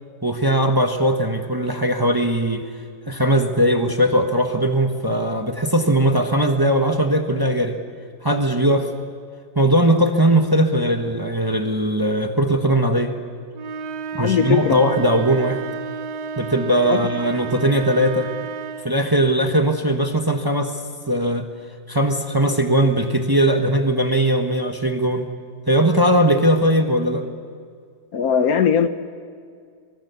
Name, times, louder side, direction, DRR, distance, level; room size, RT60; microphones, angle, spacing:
voice 1, 0.2-2.6 3.1-7.8 8.2-8.9 9.5-13.2 14.1-15.6 16.4-18.3 18.8-20.7 21.1-21.5 21.9-25.3 25.7-27.2, right 1 dB, 15° right, 5 dB, 1.1 m, -19 dB
sound 1, 13.5-19.0, right 5 dB, 90° right, 1.7 m, -32 dB
voice 2, 14.2-14.8 16.9-17.0 28.1-28.9, left 7 dB, 65° left, 11 dB, 1.3 m, -19 dB
29.5 x 23.5 x 7.0 m, 2.2 s
omnidirectional pair, 1.8 m